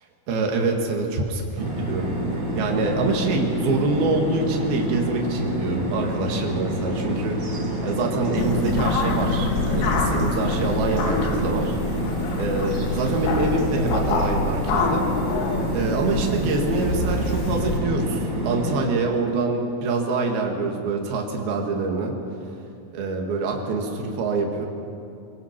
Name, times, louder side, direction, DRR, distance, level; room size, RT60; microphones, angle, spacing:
voice 1, 0.3-2.1 2.6-11.8 12.4-15.0 15.7-22.1 22.9-24.7, right 3 dB, 70° right, 1 dB, 3.7 m, -25 dB
sound 1, 1.6-18.8, equal, 30° right, 5.9 m, -28 dB
sound 2, 6.7-14.2, right 2 dB, 45° right, 1.2 m, -41 dB
sound 3, 8.4-17.8, left 3 dB, 70° left, 3.6 m, -26 dB
23.0 x 20.5 x 6.0 m, 2.6 s
omnidirectional pair, 4.6 m